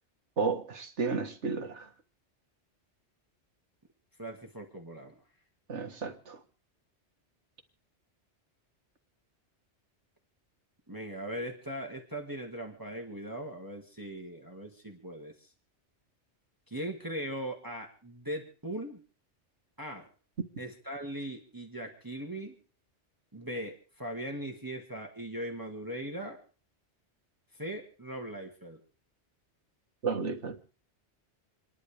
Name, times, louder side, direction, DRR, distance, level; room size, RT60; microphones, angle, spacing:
voice 1, 0.4-1.9 5.7-6.4 30.0-30.6, right 5 dB, 90° right, 1.9 m, -32 dB
voice 2, 4.2-5.2 10.9-15.5 16.7-19.0 19.8-20.1 20.6-22.6 23.3-26.4 27.5-28.8, right 1 dB, 20° right, 2.1 m, -39 dB
28.0 x 11.0 x 3.5 m
omnidirectional pair, 1.1 m